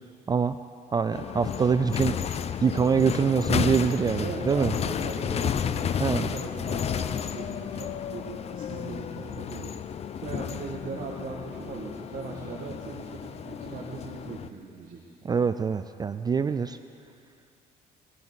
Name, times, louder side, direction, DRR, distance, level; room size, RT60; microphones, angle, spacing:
voice 1, 0.3-0.6 0.9-4.7 6.0-6.3 15.2-16.8, right 6 dB, 25° right, 11 dB, 0.4 m, -25 dB
sound 1, 1.1-14.5, left 8 dB, 40° left, 0.5 m, -32 dB
voice 2, 4.2-9.7 10.2-15.0, right 4 dB, 55° right, -3 dB, 1.9 m, -39 dB
20.5 x 14.0 x 4.1 m, 2.5 s
cardioid pair, 110°, 17 cm